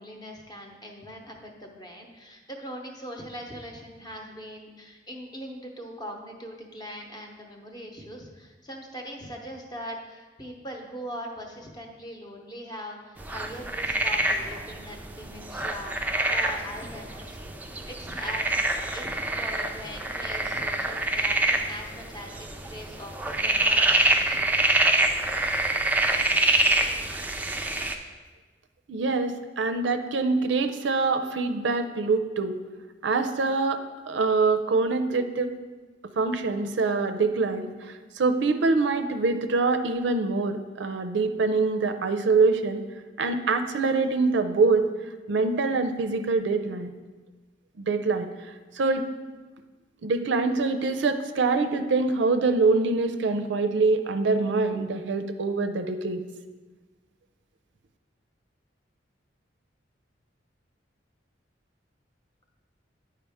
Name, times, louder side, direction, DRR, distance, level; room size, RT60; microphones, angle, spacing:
voice 1, 0.0-17.4 17.9-24.5, equal, 20° left, 1 dB, 0.8 m, -41 dB
sound 1, 13.2-28.0, right 2 dB, 10° right, 0.4 m, -26 dB
voice 2, 28.9-32.6 33.0-35.5 36.2-42.8 43.2-44.8 45.3-46.9 47.8-48.3 48.7-49.1 50.0-56.2, right 3 dB, 70° right, 8 dB, 0.5 m, -24 dB
9.6 x 4.7 x 3.5 m, 1.3 s
head